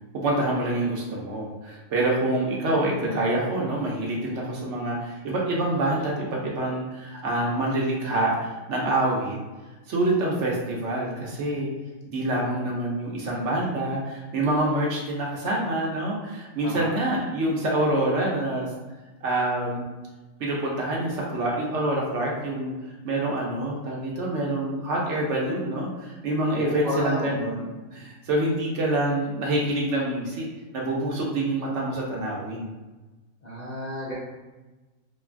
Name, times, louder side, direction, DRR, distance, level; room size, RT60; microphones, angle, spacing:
voice 1, 0.1-9.4 9.9-11.7 12.1-18.7 19.2-19.9 20.4-22.7 23.0-30.5 30.7-32.7, right 1 dB, 65° right, -3 dB, 0.9 m, -26 dB
voice 2, 26.5-27.3 33.4-34.1, equal, 45° left, -9 dB, 0.6 m, -30 dB
3.0 x 2.2 x 2.4 m, 1.2 s
omnidirectional pair, 1.4 m